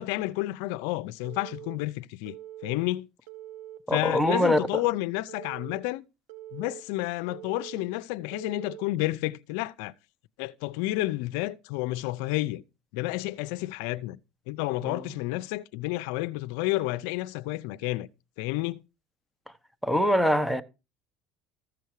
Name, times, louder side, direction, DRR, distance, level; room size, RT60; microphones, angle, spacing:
voice 1, 0.0-2.4 2.6-3.1 3.9-6.0 6.5-9.9 10.4-12.6 12.9-14.2 14.5-18.1 18.4-18.8, left 18 dB, 80° left, 0.5 m, -30 dB
Telephone, 1.2-1.8 2.3-2.8 3.3-3.8 4.3-4.8 5.3-5.8 6.3-6.8 7.3-7.8 8.3-8.8, right 13 dB, 80° right, 1.6 m, -43 dB
voice 2, 3.9-4.6 14.8-15.0 19.8-20.6, left 1 dB, ahead, 1.1 m, -23 dB
14.0 x 6.9 x 4.7 m
supercardioid pair, 115°, 0 cm